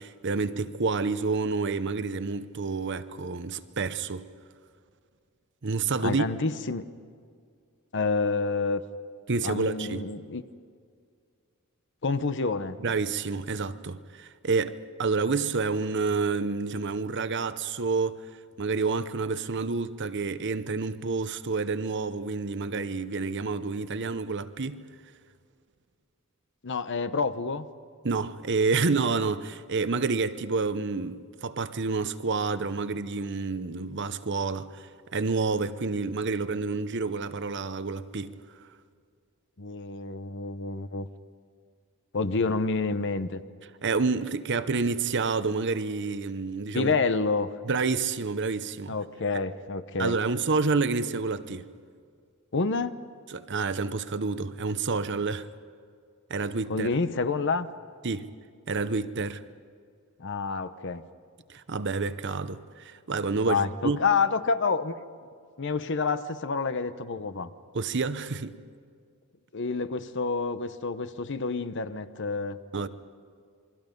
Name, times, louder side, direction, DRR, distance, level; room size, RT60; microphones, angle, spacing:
voice 1, 0.0-4.3 5.6-6.2 9.3-10.1 12.8-18.2 18.6-24.8 28.0-38.3 43.8-46.9 47.7-49.0 50.0-51.7 53.3-55.5 56.3-56.9 58.0-58.3 58.7-59.4 61.5-64.0 67.7-68.6 72.7-72.9, right 4 dB, 55° right, 0.8 m, -29 dB
voice 2, 6.0-6.9 7.9-8.8 9.4-10.5 12.0-12.8 26.6-27.7 39.6-41.1 42.1-43.4 46.7-47.5 48.9-50.1 52.5-53.0 56.7-57.7 60.2-61.0 63.5-65.0 65.6-67.5 69.5-72.6, left 4 dB, 55° left, 0.9 m, -28 dB
28.0 x 23.0 x 5.3 m
head